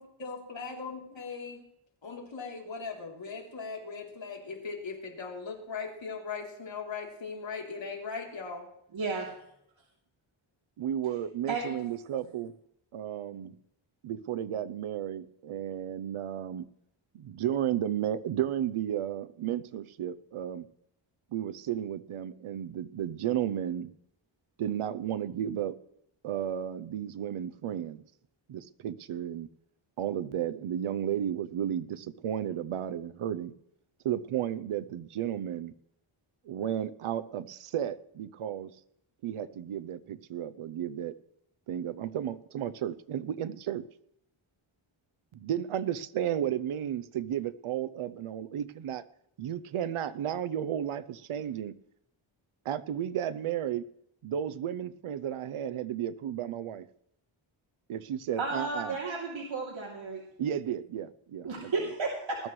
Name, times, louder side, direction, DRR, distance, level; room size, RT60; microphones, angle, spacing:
voice 1, 0.2-1.6 2.0-8.7, left 5 dB, 65° left, -1 dB, 3.4 m, -39 dB
voice 2, 8.9-9.3 11.5-11.7 58.4-60.2 61.4-62.5, right 4 dB, 65° right, -4 dB, 3.1 m, -33 dB
voice 3, 10.8-12.6 12.9-13.5 14.0-16.7 17.1-20.7 21.3-23.9 24.6-25.8 26.2-28.0 28.5-29.5 30.0-33.5 34.0-35.7 36.5-38.7 39.2-41.1 41.7-43.8 45.3-49.0 49.4-51.8 52.6-53.8 54.2-56.9 57.9-59.0 60.4-61.9, right 10 dB, 80° right, 13 dB, 0.8 m, -33 dB
20.5 x 12.5 x 3.2 m, 0.76 s
cardioid pair, 85°, 49 cm